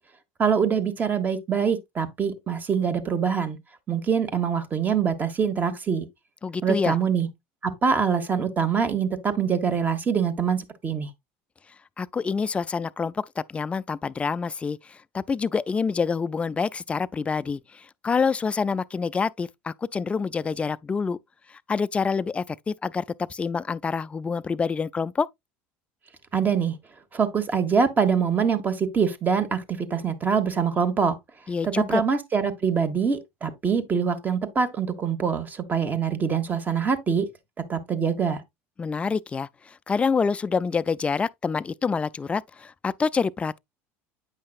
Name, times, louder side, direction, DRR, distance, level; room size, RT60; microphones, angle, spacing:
voice 1, 0.4-3.6 3.9-6.1 6.6-7.3 7.6-11.1 26.3-26.8 27.1-31.2 31.6-37.3 37.6-38.4, right 6 dB, 25° right, 1.2 m, -24 dB
voice 2, 6.4-7.0 12.0-21.2 21.5-25.3 31.5-32.0 38.8-43.6, left 5 dB, 20° left, 0.3 m, -27 dB
8.8 x 5.6 x 2.4 m
supercardioid pair, 110°, 6 cm